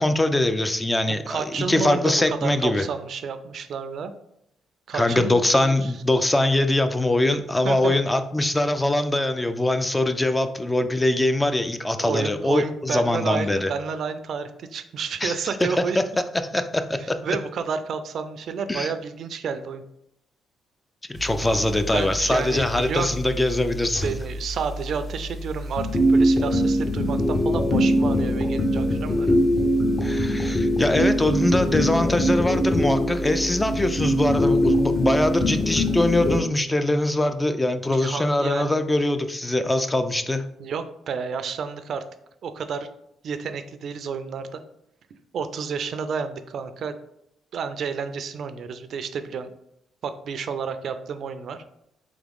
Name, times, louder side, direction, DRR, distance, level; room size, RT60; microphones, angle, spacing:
voice 1, 0.0-2.8 4.9-13.7 15.2-15.3 15.6-15.7 16.0-16.1 16.5-17.2 18.7-18.9 21.1-24.1 30.0-40.4, left 1 dB, 15° left, 9 dB, 0.4 m, -22 dB
voice 2, 1.3-4.1 4.9-5.9 7.6-8.0 12.0-16.0 17.0-19.8 21.9-23.2 24.0-29.4 38.0-38.8 40.6-42.0 42.4-42.9 43.2-44.6 45.3-47.0 47.5-49.5 50.0-51.6, right 6 dB, 65° right, 10 dB, 0.4 m, -30 dB
sound 1, 21.2-36.4, equal, 35° left, 0.9 m, -23 dB
3.5 x 3.5 x 3.5 m, 0.77 s
cardioid pair, 90°, 0 cm